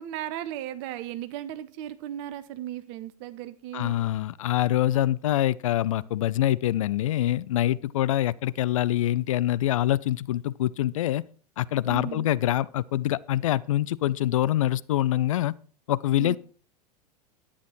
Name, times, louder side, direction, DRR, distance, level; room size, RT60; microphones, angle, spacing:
voice 1, 0.0-4.0 11.9-12.3 16.2-16.4, right 12 dB, 45° right, 0.9 m, -36 dB
voice 2, 3.7-11.2 11.6-15.6 15.9-16.4, left 13 dB, 60° left, 0.4 m, -25 dB
11.0 x 9.2 x 4.3 m
figure-of-eight pair, 85°, 19 cm